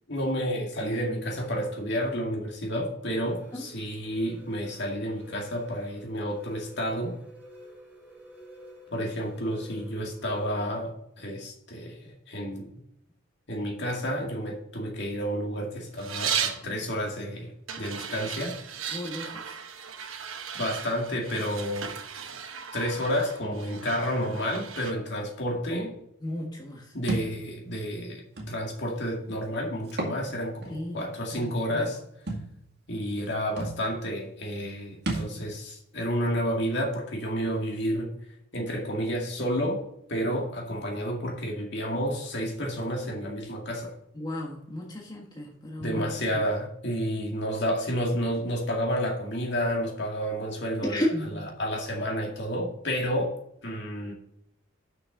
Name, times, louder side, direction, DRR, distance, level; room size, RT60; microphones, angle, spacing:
voice 1, 0.1-7.2 8.9-12.7 13.5-18.6 20.6-21.9 22.7-26.0 26.9-32.0 32.9-38.1 38.5-43.9 45.8-51.0 51.3-53.3 53.6-54.1, equal, 55° left, -1 dB, 2.1 m, -30 dB
sound 1, 3.2-10.7, right 1 dB, 10° right, 3.5 m, -49 dB
sound 2, 16.0-16.7 17.7-24.9, right 7 dB, 80° right, 1.0 m, -36 dB
voice 2, 18.9-19.4 26.2-26.8 30.7-31.0 31.3-31.8 44.1-46.1 50.8-51.4, left 1 dB, 20° left, -2 dB, 1.4 m, -33 dB
Thump thud, 27.1-27.3 28.4-28.5 29.9-30.2 30.6-30.7 32.3-32.5 33.3-33.4 33.6-33.8 35.0-35.3, right 2 dB, 55° right, 2.0 m, -30 dB
6.5 x 6.2 x 6.6 m, 0.77 s
head